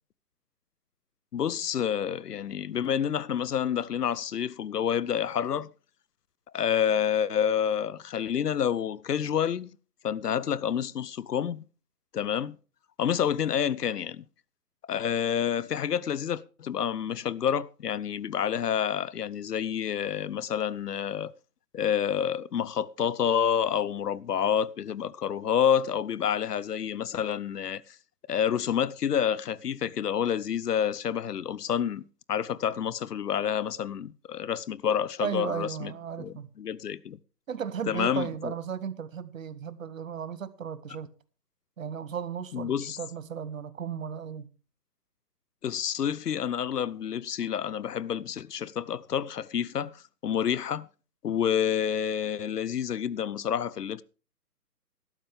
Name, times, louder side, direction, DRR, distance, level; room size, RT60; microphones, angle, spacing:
voice 1, 1.3-5.7 6.5-9.7 10.0-11.6 12.1-12.6 13.0-14.2 14.8-21.3 21.7-28.0 28.3-32.0 32.3-35.9 36.2-37.2 37.9-38.5 42.5-43.0 45.6-50.9 51.2-54.0, left 8 dB, 75° left, 0.7 m, -28 dB
voice 2, 35.2-36.5 37.5-41.1 41.8-44.5, right 7 dB, 55° right, 1.0 m, -35 dB
13.5 x 12.0 x 3.4 m
figure-of-eight pair, 150°, 48 cm